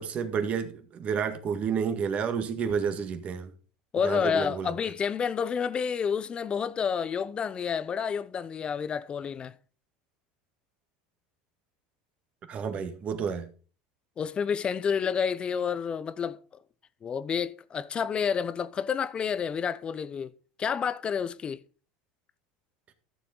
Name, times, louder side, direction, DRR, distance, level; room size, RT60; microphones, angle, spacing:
voice 1, 0.0-3.5 4.0-4.7 12.5-13.5, right 6 dB, 40° right, 1.8 m, -30 dB
voice 2, 3.9-9.5 14.2-16.4 17.0-20.3 20.6-21.6, left 7 dB, 30° left, 0.7 m, -29 dB
13.5 x 7.2 x 4.0 m
supercardioid pair, 115°, 4 cm